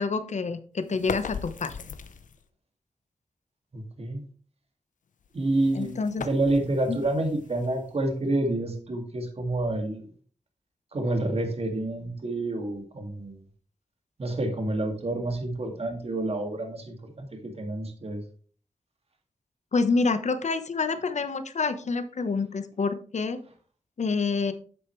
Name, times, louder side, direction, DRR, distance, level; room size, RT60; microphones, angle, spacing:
voice 1, 0.0-1.8 5.7-6.2 6.9-7.0 19.7-23.4 24.0-24.5, left 4 dB, 65° left, 10 dB, 1.1 m, -27 dB
sound 1, 0.9-2.5 5.2-8.2, left 6 dB, 80° left, 0.8 m, -39 dB
voice 2, 3.7-4.2 5.3-10.1 10.9-13.4 14.2-18.2, right 2 dB, 50° right, 4 dB, 2.3 m, -28 dB
9.6 x 7.9 x 3.2 m, 0.41 s
wide cardioid pair, 80°, 13 cm